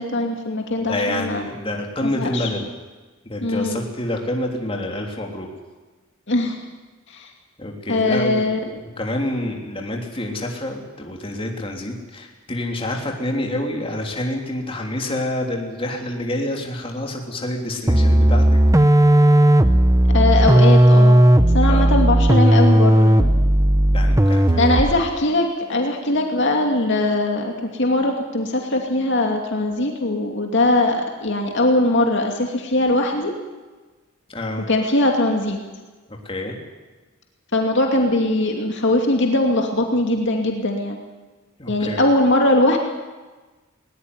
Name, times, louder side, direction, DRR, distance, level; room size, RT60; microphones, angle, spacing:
voice 1, 0.0-1.4 2.0-2.5 3.4-3.8 6.3-6.6 7.1-7.3 7.9-8.6 20.1-21.2 21.5-23.3 24.6-33.3 34.7-35.6 37.5-41.0 41.7-42.8, left 2 dB, 60° left, 2 dB, 2.6 m, -20 dB
voice 2, 0.9-2.7 3.2-5.5 7.6-8.5 8.8-18.6 21.6-21.9 23.9-24.7 34.3-34.7 36.1-36.6 41.6-42.0, left 1 dB, 25° left, 1 dB, 3.4 m, -27 dB
sound 1, 17.9-25.0, right 1 dB, 15° right, 0.9 m, -14 dB
20.0 x 19.5 x 9.7 m, 1.3 s
head